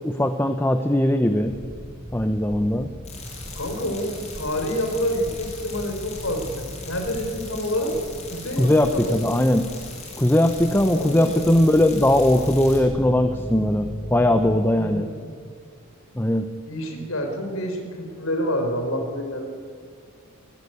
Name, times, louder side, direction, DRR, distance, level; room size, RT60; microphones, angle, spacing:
voice 1, 0.0-1.6 2.1-2.9 8.6-9.7 10.2-15.1 16.1-16.5, left 1 dB, 10° left, 7 dB, 0.8 m, -20 dB
sound 1, 1.4-14.6, equal, 5° right, 2.1 m, -38 dB
sound 2, 3.0-12.8, left 4 dB, 30° left, 6.2 m, -41 dB
voice 2, 3.5-8.0 8.3-9.2 10.9-11.6 14.8-15.3 16.7-19.4, equal, 70° left, 3 dB, 4.7 m, -28 dB
20.0 x 18.0 x 9.9 m, 2.1 s
head